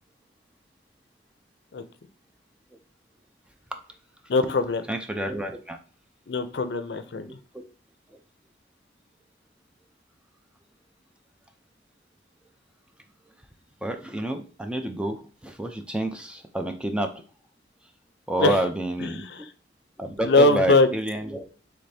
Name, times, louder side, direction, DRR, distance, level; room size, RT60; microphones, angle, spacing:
voice 1, 4.3-4.8 6.3-7.3 18.4-18.6 19.0-19.3 20.2-20.9, left 2 dB, 65° left, 10 dB, 0.5 m, -21 dB
voice 2, 4.9-5.8 7.3-7.6 8.1-8.2 13.8-17.1 18.3-19.2 20.0-21.5, right 1 dB, 5° right, 5 dB, 0.4 m, -29 dB
5.1 x 3.3 x 2.7 m, 0.38 s
head